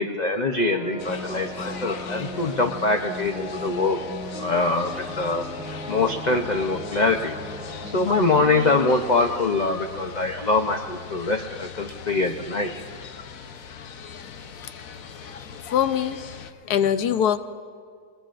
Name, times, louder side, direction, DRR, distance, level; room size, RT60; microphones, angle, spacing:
voice 1, 0.0-4.0 4.4-5.5 5.9-7.4 7.8-12.7, left 3 dB, 45° left, 4 dB, 0.6 m, -23 dB
sound 1, 0.6-9.4, equal, 5° right, 0.6 m, -37 dB
sound 2, 1.0-16.5, left 7 dB, 65° left, 1.2 m, -40 dB
voice 2, 15.7-17.4, left 9 dB, 90° left, 10 dB, 1.3 m, -23 dB
22.5 x 21.5 x 2.5 m, 2.1 s
omnidirectional pair, 1.6 m